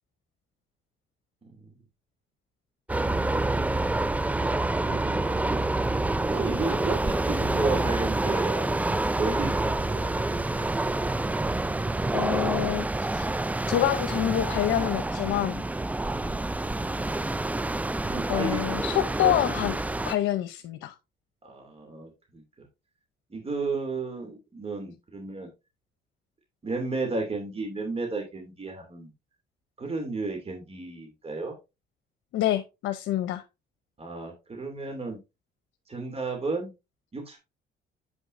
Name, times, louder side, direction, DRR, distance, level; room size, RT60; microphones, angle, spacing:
sound 1, 2.9-20.2, right 2 dB, 5° right, 0.3 m, -27 dB
voice 1, 4.7-5.7 6.3-10.7 16.1-16.4 18.1-19.5 21.4-22.4 23.3-25.5 26.6-29.1 29.8-31.6 34.0-35.2 35.9-36.7 37.1-37.4, right 3 dB, 30° right, 2.6 m, -33 dB
voice 2, 12.1-13.3 13.7-15.6 18.3-19.7 20.1-20.9 32.3-33.4, left 12 dB, 85° left, 0.8 m, -27 dB
7.8 x 6.2 x 2.6 m
cardioid pair, 90°, 20 cm